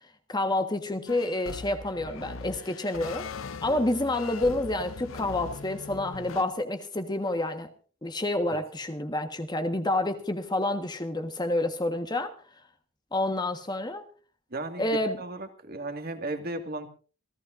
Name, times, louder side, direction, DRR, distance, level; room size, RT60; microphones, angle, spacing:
voice 1, 0.3-3.3 3.6-7.7 8.0-12.3 13.1-14.1 14.8-15.2, left 2 dB, 20° left, 1.5 m, -28 dB
sound 1, 1.1-6.4, left 4 dB, 85° left, 0.7 m, -40 dB
voice 2, 14.5-16.9, right 2 dB, 50° right, 2.1 m, -35 dB
28.0 x 15.0 x 2.6 m
head